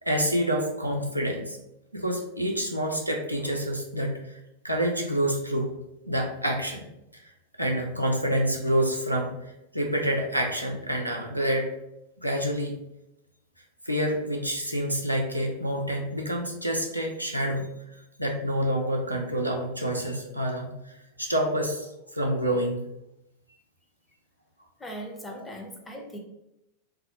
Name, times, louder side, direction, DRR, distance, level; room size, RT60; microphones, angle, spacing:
voice 1, 0.0-1.6 1.9-4.4 4.6-5.8 6.1-6.9 7.1-7.2 7.6-11.7 12.2-12.7 13.9-17.7 18.2-22.8, equal, 90° right, 0 dB, 0.5 m, -27 dB
voice 2, 24.8-26.2, equal, 10° left, 2 dB, 0.5 m, -39 dB
2.3 x 2.1 x 3.8 m, 0.86 s
figure-of-eight pair, 90°, 0 cm